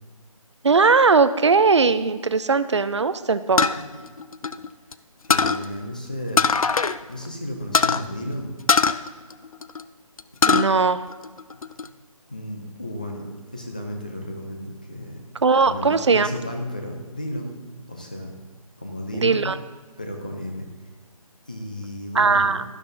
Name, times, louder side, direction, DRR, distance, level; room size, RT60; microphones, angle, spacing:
voice 1, 0.6-3.7 10.5-11.0 15.4-16.3 19.1-19.6 22.1-22.6, right 4 dB, 50° right, 13 dB, 0.6 m, -19 dB
sound 1, 3.6-4.9 5.3-5.6 6.4-7.0 7.3-7.4 7.7-8.0 8.7-9.8 10.2-10.7 11.1-11.9, left 5 dB, 70° left, 0.5 m, -20 dB
voice 2, 3.7-4.1 5.3-6.4 7.1-8.6 12.3-15.2 15.6-17.5 17.9-18.3 18.8-19.5 20.0-20.7 21.4-22.6, left 1 dB, 15° left, 2 dB, 0.5 m, -33 dB
12.5 x 12.0 x 2.6 m, 1.4 s
figure-of-eight pair, 175°, 19 cm